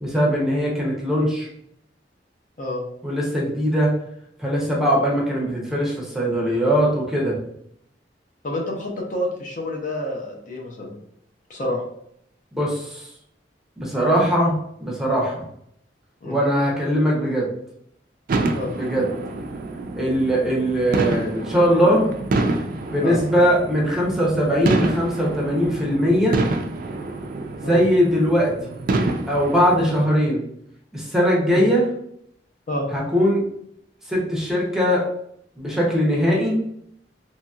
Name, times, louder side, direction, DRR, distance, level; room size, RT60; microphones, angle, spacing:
voice 1, 0.0-1.5 3.0-3.9 4.4-7.4 12.5-13.1 13.8-15.4 16.2-17.5 18.7-19.1 19.9-22.1 22.9-26.4 27.6-28.8 29.3-30.4 30.9-31.9 32.9-33.4 34.1-35.0 35.6-36.6, equal, 5° right, -3 dB, 0.6 m, -20 dB
voice 2, 8.4-10.9 11.5-11.8 16.2-16.4 18.5-18.7 23.0-23.2 27.6-27.8 31.4-31.7 32.7-32.9, left 1 dB, 45° left, 1 dB, 0.5 m, -28 dB
sound 1, 18.3-30.0, right 2 dB, 50° right, 0.3 m, -27 dB
3.0 x 2.7 x 2.3 m, 0.73 s
head